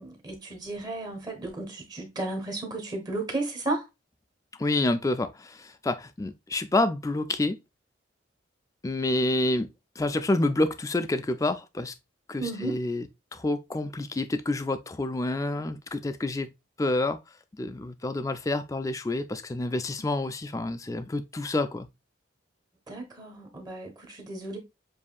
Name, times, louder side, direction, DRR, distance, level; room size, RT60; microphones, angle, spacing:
voice 1, 0.0-3.9 12.4-12.8 22.9-24.6, right 2 dB, 20° right, 1.1 m, -34 dB
voice 2, 4.6-7.6 8.8-9.7 10.0-11.9 12.3-13.0 13.3-16.5 16.8-17.2 17.6-21.9, left 2 dB, 15° left, 0.3 m, -28 dB
7.3 x 2.7 x 2.4 m
head